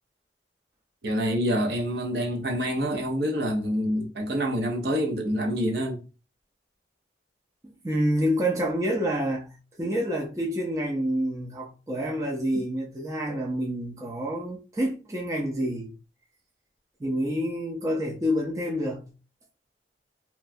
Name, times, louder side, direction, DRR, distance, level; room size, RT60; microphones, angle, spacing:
voice 1, 1.0-6.0, equal, 65° right, 0.7 m, -27 dB
voice 2, 7.6-9.5 9.8-15.9 17.0-19.1, equal, 20° right, 0.5 m, -28 dB
2.9 x 2.2 x 2.6 m
head